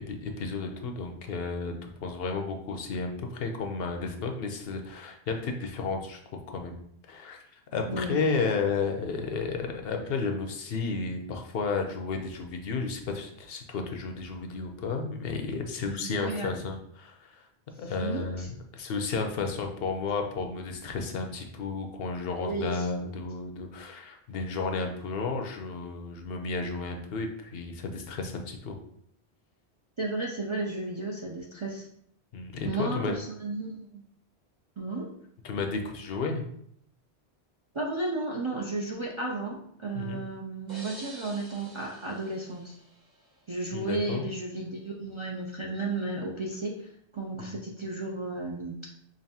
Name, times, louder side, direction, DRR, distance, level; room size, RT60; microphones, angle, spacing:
voice 1, 0.0-6.2 6.5-6.8 7.1-17.5 17.8-28.8 32.3-33.2 35.4-36.4 39.9-40.2 43.7-44.2 47.4-47.6, left 4 dB, 70° left, 4 dB, 0.8 m, -32 dB
voice 2, 7.9-8.2 15.9-16.6 17.8-18.5 22.4-22.9 30.0-31.9 32.6-34.0 34.8-35.1 37.7-42.8 43.5-48.9, right 2 dB, 45° right, -2 dB, 0.4 m, -33 dB
sound 1, 40.7-43.5, right 1 dB, 20° right, 0.9 m, -48 dB
5.2 x 2.5 x 2.7 m, 0.69 s
omnidirectional pair, 1.1 m